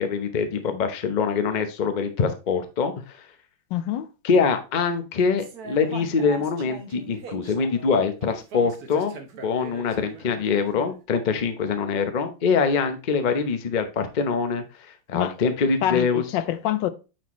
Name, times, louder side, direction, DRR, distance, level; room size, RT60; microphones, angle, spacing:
voice 1, 0.0-2.9 4.2-16.2, left 5 dB, 45° left, 0.6 m, -24 dB
voice 2, 3.7-4.1 15.1-15.3 15.8-16.9, left 12 dB, 80° left, 1.3 m, -26 dB
sound 1, 5.4-10.9, right 4 dB, 60° right, 1.4 m, -41 dB
8.8 x 4.4 x 3.1 m
omnidirectional pair, 2.0 m